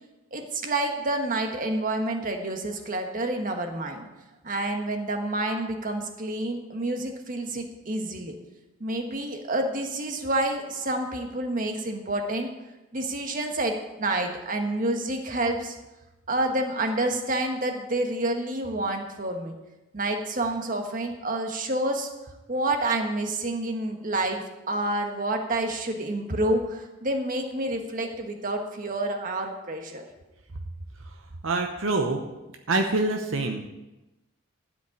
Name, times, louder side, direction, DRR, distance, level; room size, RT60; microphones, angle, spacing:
voice 1, 0.3-4.1 4.4-8.4 8.8-12.5 12.9-15.8 16.3-19.5 19.9-22.1 22.5-30.0, right 1 dB, 40° right, 4 dB, 1.4 m, -28 dB
voice 2, 31.4-32.2 32.7-33.7, right 2 dB, 75° right, 3 dB, 0.9 m, -25 dB
12.5 x 5.3 x 8.4 m, 1.0 s
head